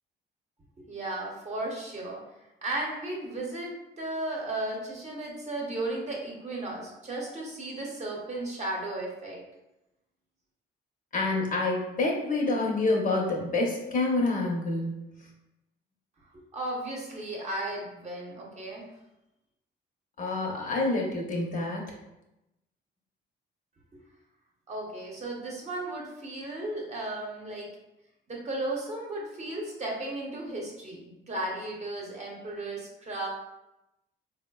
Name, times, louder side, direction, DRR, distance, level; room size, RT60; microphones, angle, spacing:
voice 1, 0.8-2.2 2.6-9.4 16.3-18.9 23.9-24.0 24.7-27.7 28.3-33.3, right 2 dB, 35° right, -3 dB, 0.8 m, -35 dB
voice 2, 11.1-15.0 20.2-21.8, left 2 dB, 40° left, -1 dB, 0.7 m, -27 dB
3.7 x 2.1 x 2.3 m, 0.94 s
cardioid pair, 90°, 20 cm